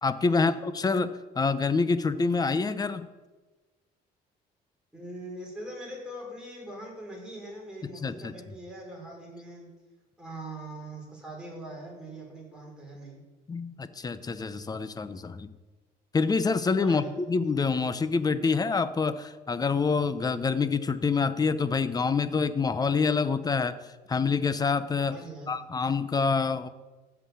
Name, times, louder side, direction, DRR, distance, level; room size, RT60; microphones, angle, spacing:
voice 1, 0.0-3.1 7.8-8.3 13.5-15.5 16.1-23.8 24.1-25.2 25.5-26.7, left 4 dB, 20° left, 13 dB, 0.8 m, -26 dB
voice 2, 4.9-9.7 10.2-13.2 16.8-17.1 25.1-25.7, right 1 dB, 5° right, -3 dB, 5.1 m, -42 dB
14.0 x 6.1 x 8.5 m, 1.2 s
cardioid pair, 110°, 17 cm